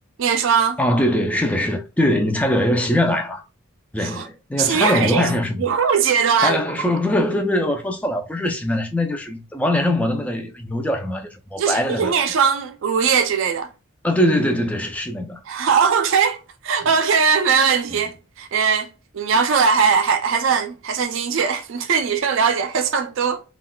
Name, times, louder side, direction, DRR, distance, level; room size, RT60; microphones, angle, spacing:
voice 1, 0.2-0.8 4.0-4.3 4.6-5.3 5.6-6.6 11.6-13.7 15.5-23.4, right 6 dB, 65° right, 0.4 m, -20 dB
voice 2, 0.8-3.4 3.9-5.6 6.4-12.2 14.0-15.4 17.9-18.0, left 1 dB, 5° left, 0.4 m, -22 dB
3.8 x 2.4 x 2.2 m
head